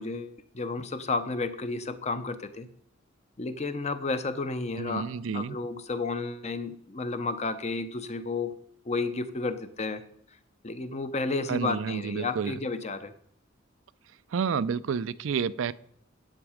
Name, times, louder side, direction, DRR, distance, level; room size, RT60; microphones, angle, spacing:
voice 1, 0.0-2.7 3.4-5.1 5.3-8.5 8.9-10.0 10.6-13.1, left 3 dB, 35° left, 11 dB, 0.7 m, -32 dB
voice 2, 4.8-5.6 11.5-12.6 14.3-15.7, right 6 dB, 70° right, 16 dB, 0.4 m, -30 dB
10.0 x 8.1 x 4.9 m, 0.67 s
head